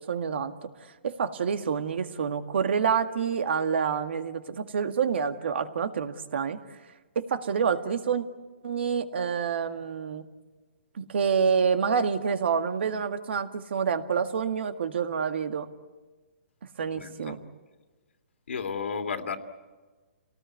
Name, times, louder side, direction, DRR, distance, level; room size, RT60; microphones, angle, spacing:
voice 1, 0.1-0.5 1.0-6.6 7.2-8.2 8.6-10.2 11.0-15.7 16.8-17.4, right 6 dB, 65° right, 8 dB, 1.9 m, -27 dB
voice 2, 16.9-17.4 18.5-19.4, left 6 dB, 80° left, 6 dB, 2.6 m, -33 dB
29.0 x 19.0 x 9.7 m, 1.3 s
hypercardioid pair, 160°, 7 cm